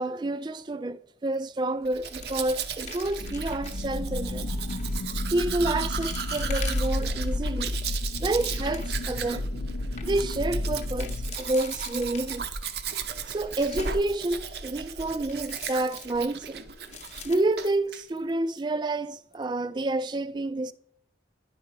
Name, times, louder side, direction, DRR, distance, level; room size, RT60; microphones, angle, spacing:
voice 1, 0.0-4.5 5.3-7.8 8.2-9.5 10.0-12.5 13.3-16.6 17.2-20.7, right 2 dB, 25° right, 0.3 m, -29 dB
sound 1, 1.3-1.6 1.9-3.9 4.6-5.0 5.5-5.6 6.0-7.3 7.8-9.1 9.5-9.6 9.8-10.1 10.8-12.7 13.2-14.1 15.3-16.4 16.8-18.3 18.6-18.7 19.2-19.4, left 7 dB, 40° left, 0.8 m, -45 dB
Domestic sounds home sounds, 1.9-17.3 17.6-18.0, right 7 dB, 60° right, 0.6 m, -36 dB
sound 2, 3.2-11.3, left 1 dB, 85° left, 0.5 m, -31 dB
10.5 x 4.8 x 4.5 m
head